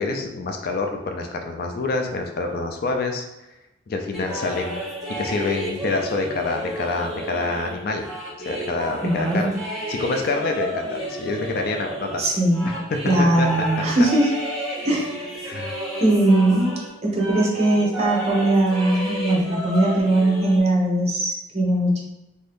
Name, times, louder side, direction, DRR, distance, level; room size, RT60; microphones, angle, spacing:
voice 1, 0.0-3.2 3.9-4.8 5.2-8.1 8.5-9.6 9.9-12.3 13.2-13.5 15.4-15.7, left 3 dB, 50° left, 4 dB, 0.4 m, -26 dB
sound 1, 4.1-16.9 17.2-20.6, right 1 dB, ahead, 0.7 m, -31 dB
voice 2, 9.0-9.5 12.2-12.7 13.1-14.3 14.8-15.1 16.0-16.7 17.0-22.0, right 1 dB, 35° right, -2 dB, 0.7 m, -20 dB
2.7 x 2.6 x 3.4 m, 0.95 s
head